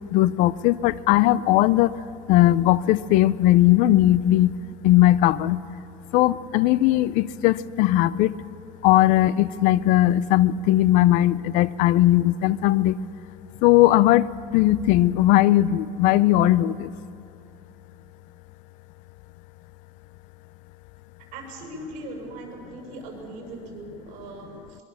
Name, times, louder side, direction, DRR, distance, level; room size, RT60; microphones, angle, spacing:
voice 1, 0.1-1.9 2.3-4.5 4.8-5.6 6.1-8.3 8.8-12.9 13.6-14.3 14.5-16.9, left 14 dB, 65° left, 18 dB, 0.6 m, -18 dB
voice 2, 21.3-24.8, right 2 dB, 60° right, 1 dB, 6.6 m, -39 dB
22.5 x 22.0 x 7.1 m, 2.5 s
cardioid pair, 170°, 14 cm